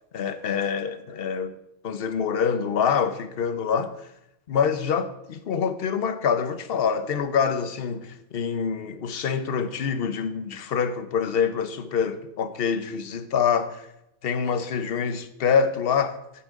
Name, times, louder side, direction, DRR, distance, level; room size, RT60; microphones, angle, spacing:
voice 1, 0.1-1.5 1.8-4.1 4.5-13.9 14.2-16.2, left 6 dB, 50° left, 0.9 m, -26 dB
14.5 x 9.2 x 3.6 m
omnidirectional pair, 1.4 m